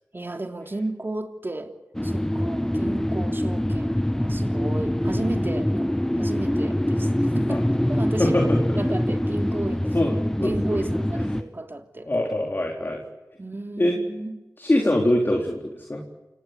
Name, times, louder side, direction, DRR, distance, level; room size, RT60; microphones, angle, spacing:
voice 1, 0.1-1.7 2.0-5.9 6.2-7.6 7.9-9.9 10.4-12.1 13.4-14.4, right 2 dB, 35° right, 3.1 m, -33 dB
sound 1, 1.9-11.4, left 1 dB, 10° left, 1.0 m, -24 dB
voice 2, 8.2-8.8 9.9-10.8 12.0-13.0 13.8-14.0 14.6-16.0, left 1 dB, 35° left, 3.9 m, -24 dB
28.5 x 18.5 x 8.3 m
wide cardioid pair, 60°, 6 cm